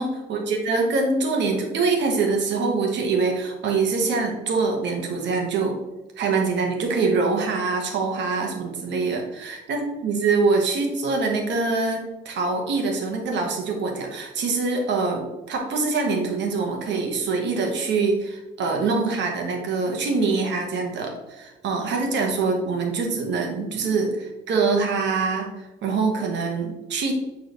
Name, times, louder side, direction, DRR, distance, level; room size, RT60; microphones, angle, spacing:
voice 1, 0.0-5.7 6.2-27.1, right 4 dB, 60° right, 2 dB, 1.5 m, -24 dB
9.2 x 4.0 x 3.1 m, 1.1 s
cardioid pair, 130°, 21 cm